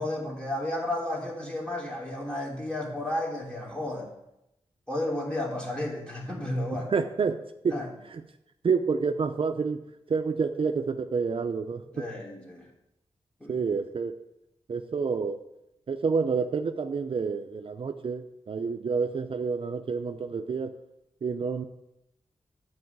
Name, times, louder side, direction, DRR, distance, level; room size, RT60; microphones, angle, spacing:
voice 1, 0.0-4.1 4.9-6.9 7.7-7.9 11.9-12.7 13.4-13.5, left 1 dB, 10° left, -3 dB, 3.0 m, -32 dB
voice 2, 6.7-7.8 8.1-8.2 8.6-11.8 13.5-14.1 14.7-15.5 15.9-20.7 21.2-21.6, right 5 dB, 50° right, 7 dB, 0.5 m, -29 dB
11.0 x 4.7 x 7.9 m, 0.85 s
wide cardioid pair, 110°, 11 cm